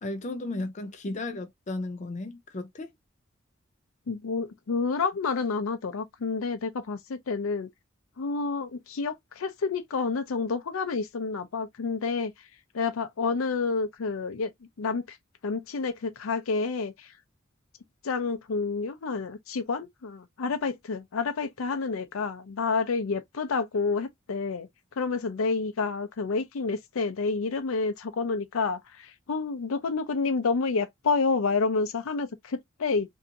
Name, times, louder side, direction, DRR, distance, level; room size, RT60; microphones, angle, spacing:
voice 1, 0.0-2.9, left 2 dB, 35° left, 0.5 m, -34 dB
voice 2, 4.1-7.7 8.2-12.3 12.7-14.5 14.8-15.2 15.4-17.1 18.0-24.7 25.0-33.1, left 4 dB, 85° left, 0.5 m, -29 dB
2.8 x 2.5 x 2.5 m
head